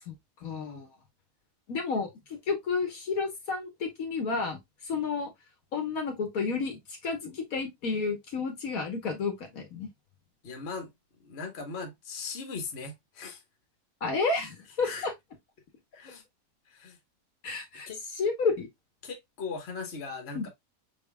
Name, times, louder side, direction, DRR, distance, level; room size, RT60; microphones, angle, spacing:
voice 1, 0.4-0.9 1.7-2.1 2.5-4.6 4.9-5.3 5.7-9.9 14.0-15.1 17.4-17.9 18.2-18.7 20.4-20.5, left 4 dB, 65° left, 1.5 m, -31 dB
voice 2, 10.4-10.9 11.2-13.4 14.8-15.1 15.9-16.2 16.7-17.0 17.9-18.0 19.0-20.5, left 4 dB, 45° left, 1.4 m, -39 dB
5.8 x 3.6 x 2.2 m
omnidirectional pair, 1.7 m